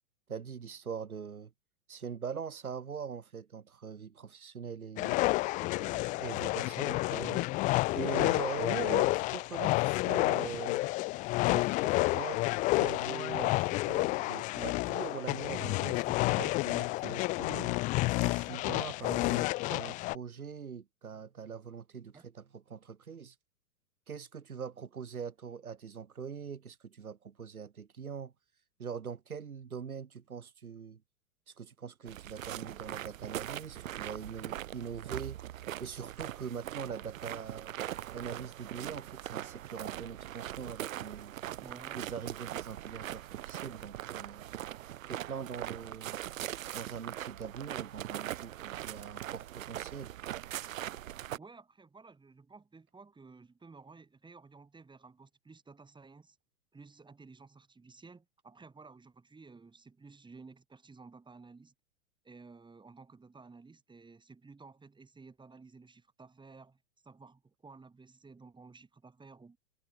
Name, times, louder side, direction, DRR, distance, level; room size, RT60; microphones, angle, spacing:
voice 1, 0.3-1.5 1.9-5.2 6.2-7.5 7.9-10.8 11.5-12.4 12.7-17.8 18.2-23.4 24.1-28.3 28.8-31.0 31.5-35.4 35.8-37.7 38.1-41.4 41.9-44.5 45.1-46.2 46.7-50.2, right 6 dB, 80° right, 2.5 m, -42 dB
sound 1, 5.0-20.2, left 21 dB, 20° left, 0.4 m, -30 dB
voice 2, 5.6-6.2 8.5-8.6 22.1-22.3 41.6-42.1 51.4-56.4 56.7-61.7 62.2-69.6, right 4 dB, 10° right, 7.0 m, -54 dB
sound 2, 32.1-51.4, right 12 dB, 65° right, 0.9 m, -41 dB
figure-of-eight pair, 105°, 43 cm